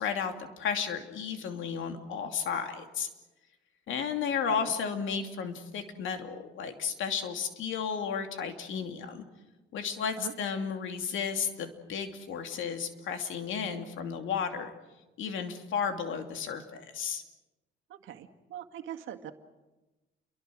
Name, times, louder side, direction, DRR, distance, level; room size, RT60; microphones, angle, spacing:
voice 1, 0.0-3.1 3.9-9.3 9.7-14.7 15.2-17.2, left 6 dB, 80° left, 6 dB, 2.7 m, -33 dB
voice 2, 4.2-4.7 10.2-10.3 17.9-19.3, right 11 dB, 85° right, 5 dB, 1.9 m, -42 dB
29.0 x 23.5 x 6.3 m, 1.1 s
cardioid pair, 90°, 20 cm